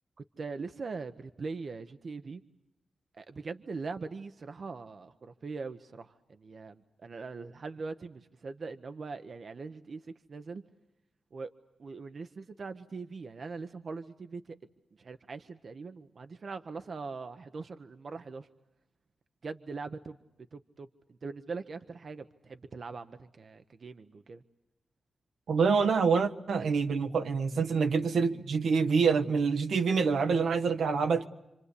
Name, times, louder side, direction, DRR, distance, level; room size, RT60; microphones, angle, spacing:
voice 1, 0.4-2.4 3.2-10.0 10.3-10.6 11.3-11.5 11.8-14.6 15.0-18.5 19.4-20.2 20.5-20.9 21.2-24.4, right 4 dB, 60° right, 8 dB, 1.0 m, -41 dB
voice 2, 25.5-31.3, right 5 dB, 85° right, 7 dB, 1.4 m, -26 dB
28.0 x 25.5 x 8.4 m, 0.91 s
cardioid pair, 70°, 0 cm